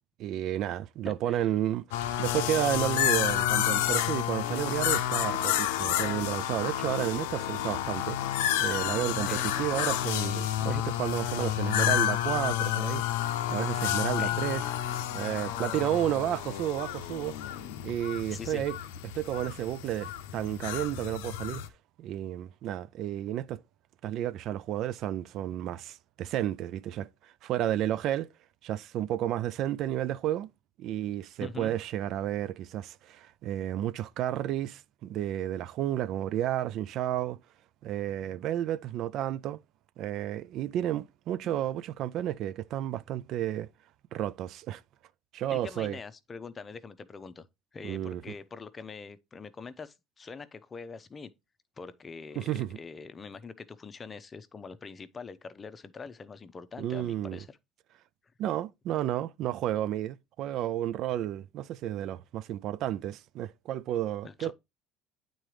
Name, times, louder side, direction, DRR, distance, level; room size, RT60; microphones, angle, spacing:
voice 1, 0.2-8.2 8.6-14.6 15.1-17.4 17.8-18.8 19.1-21.6 22.0-23.6 24.0-28.3 28.6-30.5 30.8-37.4 37.8-39.6 40.0-43.7 44.1-44.8 45.3-46.0 47.8-48.2 52.4-52.8 56.8-57.4 58.4-64.5, right 12 dB, 60° right, 0.3 m, -32 dB
voice 2, 1.0-1.4 9.3-9.5 14.2-14.4 18.3-18.6 31.4-31.7 41.4-41.6 45.5-47.5 47.7-51.3 51.8-57.6 64.2-64.5, left 5 dB, 25° left, 0.6 m, -44 dB
sound 1, 1.9-21.7, left 12 dB, 90° left, 0.5 m, -30 dB
8.8 x 3.9 x 3.2 m
supercardioid pair, 100°, 0 cm